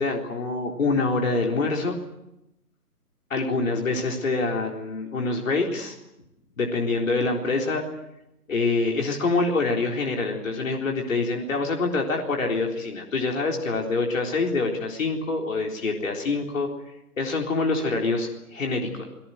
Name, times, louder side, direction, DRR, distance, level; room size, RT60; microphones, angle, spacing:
voice 1, 0.0-2.0 3.3-5.9 6.6-7.8 8.5-16.7 17.2-19.1, left 3 dB, 55° left, 1 dB, 4.0 m, -25 dB
27.5 x 19.0 x 7.9 m, 0.88 s
figure-of-eight pair, 145°, 47 cm